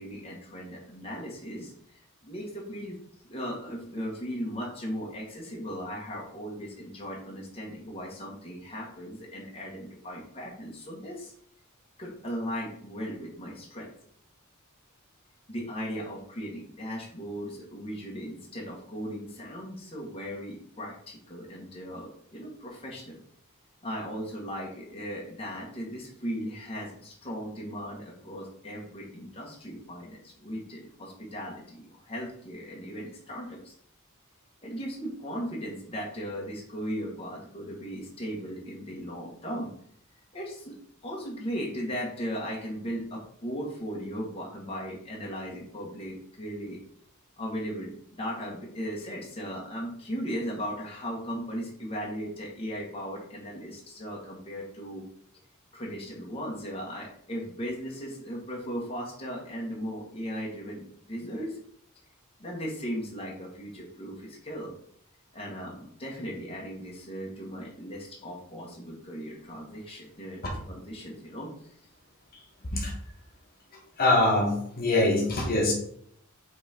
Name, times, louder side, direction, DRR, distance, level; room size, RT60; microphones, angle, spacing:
voice 1, 0.0-1.7 2.2-3.0 3.2-11.3 12.0-13.9 15.5-23.2 23.8-33.7 34.6-39.7 40.3-40.7 41.0-46.8 47.4-55.0 55.7-61.6 62.4-64.7 65.3-71.5, equal, 30° left, -3 dB, 1.5 m, -37 dB
voice 2, 74.0-75.7, left 2 dB, 45° left, -1 dB, 1.6 m, -23 dB
5.6 x 4.4 x 4.3 m, 0.65 s
head